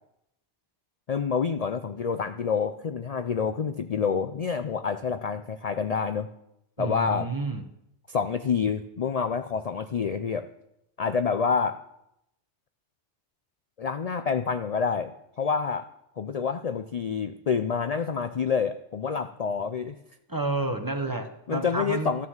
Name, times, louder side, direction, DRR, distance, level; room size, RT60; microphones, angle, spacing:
voice 1, 1.1-6.3 6.8-7.3 8.1-10.5 11.0-11.8 13.8-15.1 15.4-15.8 16.2-19.9 21.5-22.3, left 6 dB, 45° left, 10 dB, 0.5 m, -27 dB
voice 2, 6.8-7.7 20.3-22.1, right 2 dB, 20° right, 6 dB, 1.0 m, -30 dB
13.0 x 9.6 x 7.2 m, 0.81 s
omnidirectional pair, 1.2 m